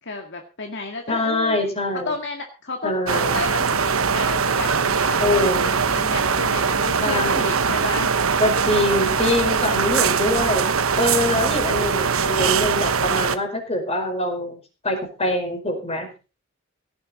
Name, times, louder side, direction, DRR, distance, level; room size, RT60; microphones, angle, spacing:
voice 1, 0.0-1.6 2.1-8.1, left 3 dB, 60° left, 3 dB, 2.1 m, -32 dB
voice 2, 1.1-2.1 2.8-3.4 5.2-5.7 7.0-7.6 8.4-10.7 11.0-14.6 14.8-16.1, left 1 dB, 30° left, 4 dB, 4.8 m, -24 dB
sound 1, 3.1-13.4, right 5 dB, 85° right, 1.1 m, -21 dB
17.0 x 11.0 x 4.2 m, 0.33 s
head